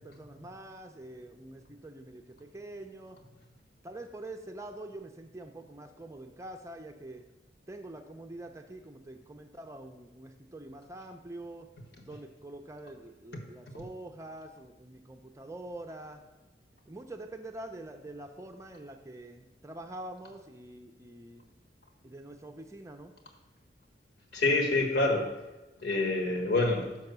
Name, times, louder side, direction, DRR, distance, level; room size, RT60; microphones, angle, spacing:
voice 1, 0.0-3.2 3.8-7.2 7.7-11.7 12.0-16.2 16.9-21.5 22.0-23.1, right 1 dB, 15° right, 5 dB, 0.5 m, -45 dB
voice 2, 24.3-25.3 25.8-27.0, left 2 dB, 70° left, 1 dB, 1.4 m, -27 dB
5.9 x 5.3 x 6.7 m, 1.1 s
head